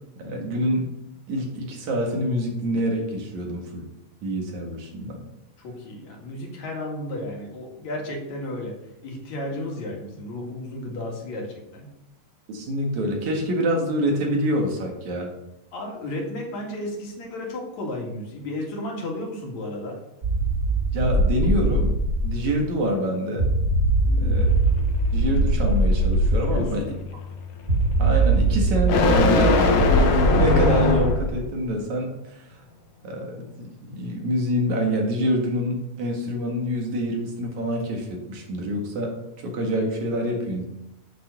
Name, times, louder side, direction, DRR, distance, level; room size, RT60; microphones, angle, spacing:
voice 1, 0.2-0.9 1.3-3.8 4.2-5.2 12.5-15.3 20.9-21.9 22.2-23.5 24.2-24.6 25.1-26.8 28.0-29.7 30.1-32.6 33.0-39.2 39.4-40.7, equal, 65° right, 2 dB, 3.1 m, -26 dB
voice 2, 5.6-8.7 9.0-11.9 15.7-20.0 24.0-24.4 26.4-26.9, left 1 dB, 60° left, 0 dB, 3.5 m, -33 dB
sound 1, 20.2-22.5 23.4-26.6 27.7-31.3, right 2 dB, 35° right, 1.3 m, -21 dB
sound 2, 24.4-31.3, left 3 dB, 85° left, 2.8 m, -23 dB
8.5 x 7.6 x 6.8 m, 0.87 s
omnidirectional pair, 3.7 m